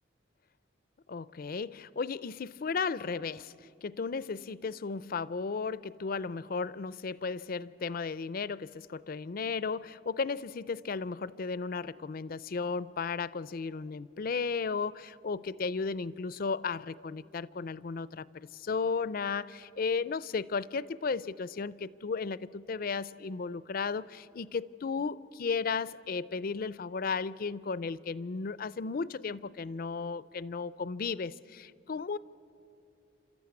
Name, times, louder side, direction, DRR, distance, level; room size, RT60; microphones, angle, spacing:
voice 1, 1.1-32.2, left 5 dB, 45° left, 19 dB, 0.4 m, -34 dB
29.5 x 13.0 x 9.6 m, 2.6 s
head